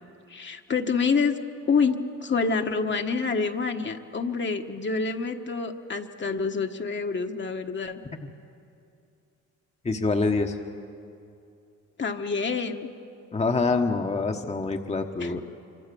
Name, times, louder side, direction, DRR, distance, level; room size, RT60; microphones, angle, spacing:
voice 1, 0.3-1.4 1.7-8.0 12.0-12.9 15.2-15.3, left 5 dB, 40° left, 4 dB, 1.4 m, -27 dB
voice 2, 9.8-10.6 13.3-15.4, left 3 dB, 20° left, 4 dB, 1.2 m, -25 dB
25.0 x 25.0 x 7.0 m, 2.6 s
cardioid pair, 90°, 30 cm